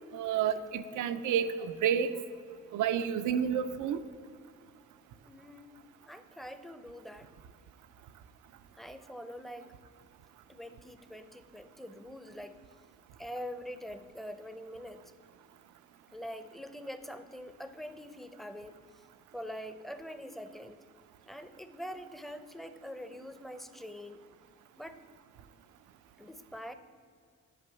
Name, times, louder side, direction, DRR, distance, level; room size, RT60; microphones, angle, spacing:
voice 1, 0.1-2.1 2.7-4.0, right 8 dB, 80° right, 11 dB, 0.6 m, -30 dB
voice 2, 5.2-5.8 6.0-7.3 8.7-9.7 10.5-12.6 13.2-15.0 16.1-19.0 19.3-20.8 21.3-24.2 24.8-25.0 26.2-26.7, equal, ahead, 10 dB, 0.6 m, -44 dB
10.0 x 5.3 x 6.8 m, 2.2 s
cardioid pair, 90°, 30 cm